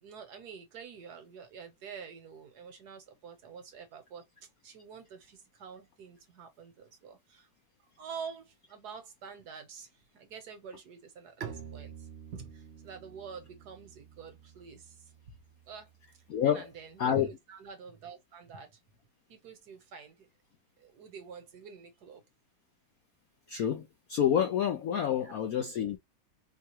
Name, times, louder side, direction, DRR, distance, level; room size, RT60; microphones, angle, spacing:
voice 1, 0.0-4.2 4.6-7.5 8.0-15.0 15.7-15.9 16.4-18.8 19.3-20.3 20.8-22.2 25.0-25.4, right 6 dB, 60° right, 1.3 m, -47 dB
Bowed string instrument, 11.4-17.0, right 8 dB, 80° right, 0.5 m, -49 dB
voice 2, 16.3-16.7 17.0-17.3 23.5-26.0, left 9 dB, 70° left, 0.8 m, -28 dB
4.5 x 2.3 x 2.9 m
omnidirectional pair, 2.1 m